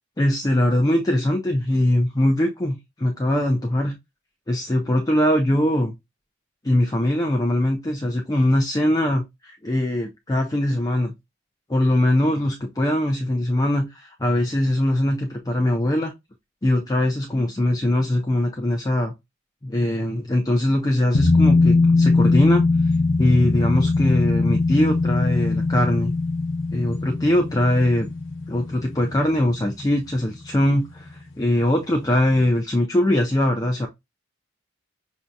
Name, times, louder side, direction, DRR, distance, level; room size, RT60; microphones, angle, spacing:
voice 1, 0.2-3.9 4.5-5.9 6.6-11.1 11.7-16.1 16.6-19.1 19.6-22.6 23.2-26.1 26.7-28.1 28.5-33.9, left 1 dB, 20° left, 0.5 m, -21 dB
sound 1, 21.1-30.3 30.6-30.7, left 3 dB, 70° left, 0.8 m, -21 dB
6.1 x 2.7 x 2.2 m
head